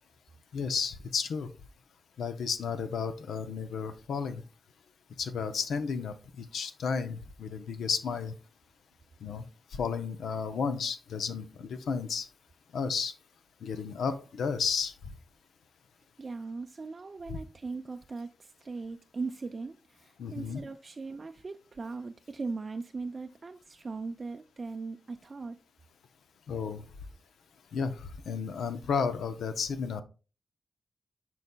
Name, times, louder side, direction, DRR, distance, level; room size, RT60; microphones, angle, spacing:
voice 1, 0.5-1.5 2.2-4.4 5.2-8.3 9.2-9.4 9.7-12.3 12.7-13.1 13.6-14.9 17.3-17.4 20.2-20.6 26.5-26.8 27.7-30.0, left 5 dB, 90° left, 0.6 m, -32 dB
voice 2, 16.2-25.6, right 4 dB, 50° right, 0.4 m, -39 dB
10.5 x 4.2 x 2.2 m
cardioid pair, 55°, 0 cm